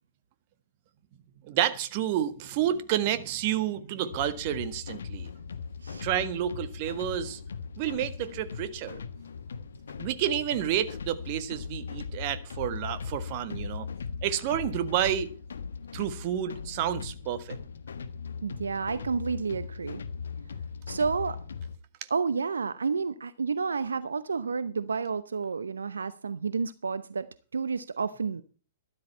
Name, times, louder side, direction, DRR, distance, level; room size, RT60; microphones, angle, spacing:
voice 1, 1.4-5.3 6.0-7.4 7.8-9.0 10.0-13.9 14.2-15.3 15.9-17.6, right 11 dB, 45° right, 1.6 m, -30 dB
sound 1, 4.1-21.8, left 5 dB, 75° left, 1.3 m, -39 dB
voice 2, 18.4-20.0 20.9-21.4 22.1-28.4, right 5 dB, 80° right, 0.8 m, -30 dB
13.0 x 12.5 x 4.3 m
figure-of-eight pair, 115°, 0 cm